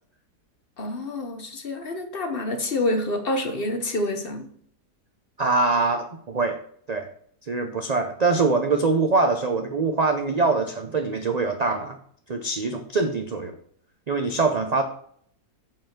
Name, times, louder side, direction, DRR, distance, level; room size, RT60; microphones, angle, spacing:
voice 1, 0.8-4.5, left 1 dB, 40° left, 6 dB, 1.0 m, -27 dB
voice 2, 5.4-6.6 6.9-7.1 7.5-12.0 12.3-13.6 14.1-14.8, right 3 dB, 60° right, 5 dB, 0.4 m, -23 dB
7.3 x 4.7 x 5.9 m, 0.63 s
omnidirectional pair, 1.7 m